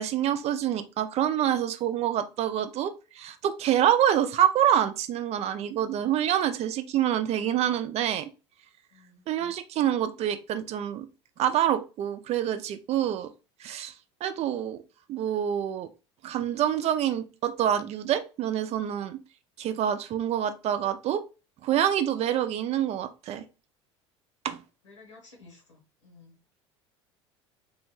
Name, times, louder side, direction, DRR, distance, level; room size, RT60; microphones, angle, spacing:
voice 1, 0.0-8.3 9.3-11.1 11.4-13.3 13.6-13.9 14.2-14.8 15.1-15.9 16.2-19.2 19.6-21.2 21.6-23.4 24.4-24.6, right 10 dB, 45° right, 9 dB, 0.5 m, -26 dB
voice 2, 8.9-9.2 24.8-26.4, left 3 dB, 90° left, 1 dB, 1.2 m, -53 dB
3.4 x 2.2 x 3.1 m, 0.30 s
hypercardioid pair, 70°, 15 cm